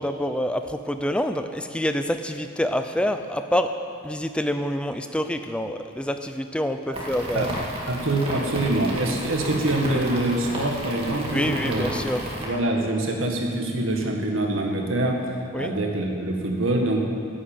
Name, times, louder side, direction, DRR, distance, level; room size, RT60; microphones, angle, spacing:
voice 1, 0.0-3.7 4.0-7.5 11.3-12.2 15.5-15.7, equal, 5° left, 8 dB, 0.5 m, -26 dB
sound 1, 6.9-12.5, equal, 25° right, 2.2 m, -32 dB
voice 2, 7.9-11.9 12.4-15.2 15.6-17.0, right 1 dB, 75° right, 1 dB, 1.8 m, -25 dB
11.5 x 8.7 x 8.9 m, 2.6 s
head